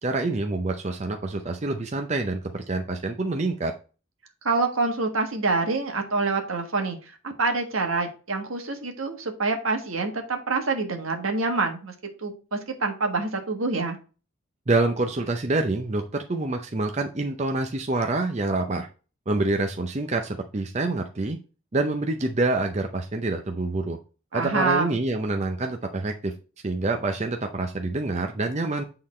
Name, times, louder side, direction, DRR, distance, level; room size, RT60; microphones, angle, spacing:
voice 1, 0.0-3.7 14.7-18.9 19.3-21.4 21.7-24.0 24.3-26.3 26.6-28.8, right 2 dB, 30° right, 4 dB, 0.6 m, -26 dB
voice 2, 4.4-7.0 7.2-11.9 12.2-14.0 24.3-25.0, right 3 dB, 75° right, 4 dB, 1.5 m, -26 dB
8.6 x 3.8 x 4.3 m, 0.35 s
head